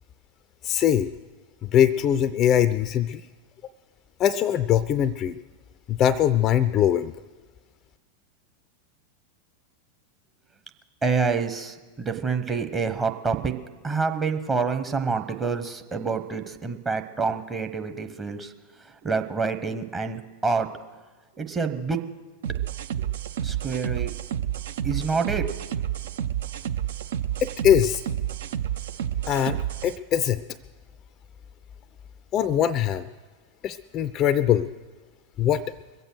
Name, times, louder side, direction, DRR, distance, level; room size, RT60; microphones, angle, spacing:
voice 1, 0.6-1.1 1.6-3.2 4.2-5.4 5.9-7.1 27.4-28.0 29.3-30.4 32.3-33.1 33.6-34.7 35.4-35.6, left 10 dB, 30° left, 14 dB, 0.4 m, -22 dB
voice 2, 11.0-13.5 13.8-18.5 18.8-20.7 21.4-22.0 23.0-23.1 23.4-24.1 24.8-25.5, right 5 dB, 20° right, 6 dB, 1.1 m, -27 dB
sound 1, 22.4-30.0, right 10 dB, 60° right, 0.5 m, -30 dB
22.5 x 8.1 x 6.3 m, 1.4 s
figure-of-eight pair, 90°, 0 cm